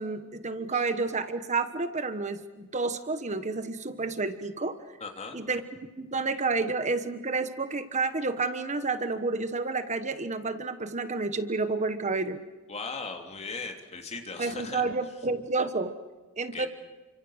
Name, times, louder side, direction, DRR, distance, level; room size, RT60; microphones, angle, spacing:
voice 1, 0.0-4.8 5.3-12.4 14.4-15.9 16.4-16.7, right 3 dB, 35° right, 10 dB, 1.3 m, -30 dB
voice 2, 5.0-5.4 12.7-14.8 16.5-16.7, left 4 dB, 30° left, 4 dB, 3.1 m, -38 dB
29.5 x 25.5 x 6.5 m, 1.3 s
head